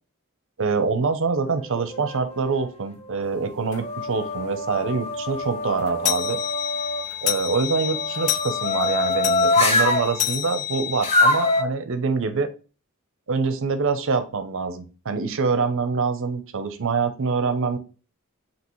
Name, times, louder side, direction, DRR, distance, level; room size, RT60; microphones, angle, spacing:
voice 1, 0.6-6.4 7.2-12.5 13.3-17.8, right 4 dB, 60° right, 10 dB, 0.6 m, -25 dB
sound 1, 1.6-2.5 3.1-7.0 7.8-10.1 11.0-11.6, left 2 dB, 30° left, 0.6 m, -24 dB
sound 2, 3.7-3.9 4.3-4.4 4.8-4.9 5.2-11.6, left 11 dB, 70° left, 0.3 m, -29 dB
5.4 x 2.9 x 3.0 m, 0.34 s
head